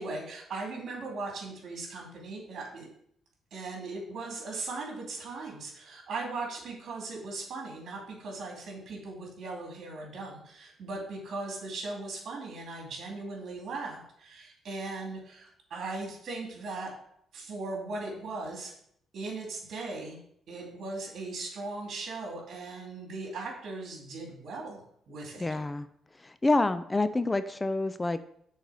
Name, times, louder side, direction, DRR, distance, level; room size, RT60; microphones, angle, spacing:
voice 1, 0.0-2.9 3.5-16.9 17.3-18.7 19.1-20.2 20.5-24.8 25.1-25.5, right 3 dB, 65° right, -1 dB, 2.4 m, -38 dB
voice 2, 25.4-25.9 26.2-28.2, left 2 dB, 20° left, 12 dB, 0.3 m, -27 dB
6.5 x 4.0 x 4.8 m, 0.68 s
cardioid pair, 90°, 0 cm